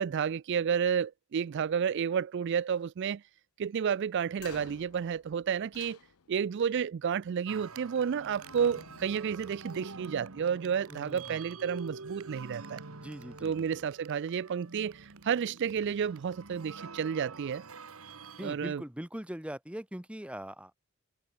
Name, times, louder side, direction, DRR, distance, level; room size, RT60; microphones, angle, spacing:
voice 1, 0.0-3.2 3.6-6.0 6.3-12.8 13.4-17.6 18.4-18.8, right 7 dB, 50° right, 0.3 m, -31 dB
sound 1, 4.3-6.6 7.8-8.1 8.4-10.2, left 7 dB, 75° left, 0.7 m, -53 dB
sound 2, 7.5-18.6, right 4 dB, 70° right, 1.6 m, -47 dB
voice 2, 10.9-11.4 12.9-13.7 18.4-20.8, equal, 5° right, 1.1 m, -41 dB
head